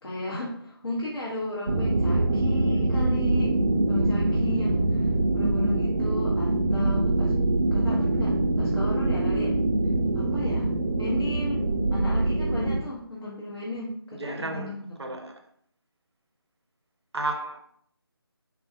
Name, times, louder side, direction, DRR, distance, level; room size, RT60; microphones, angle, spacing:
voice 1, 0.0-3.6 3.9-7.3 7.7-9.5 10.1-10.7 11.0-15.0, left 1 dB, 80° left, 1.0 m, -35 dB
sound 1, 1.7-12.8, right 2 dB, 40° right, 0.4 m, -24 dB
voice 2, 14.1-14.7 15.0-15.4 17.1-17.6, right 2 dB, 85° right, 0.6 m, -32 dB
3.8 x 2.4 x 2.7 m
figure-of-eight pair, 165°, 13 cm